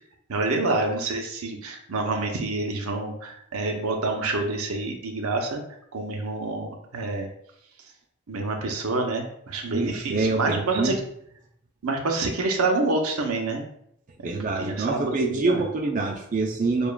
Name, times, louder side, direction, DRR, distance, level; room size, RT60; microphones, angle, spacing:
voice 1, 0.3-5.6 5.9-7.3 8.3-11.0 11.8-13.6 14.2-14.3 14.6-15.0 15.3-15.7, right 3 dB, 80° right, 2 dB, 0.7 m, -27 dB
voice 2, 9.7-11.0 14.2-16.9, right 3 dB, 35° right, 0 dB, 0.4 m, -26 dB
6.8 x 2.4 x 2.2 m, 0.73 s
head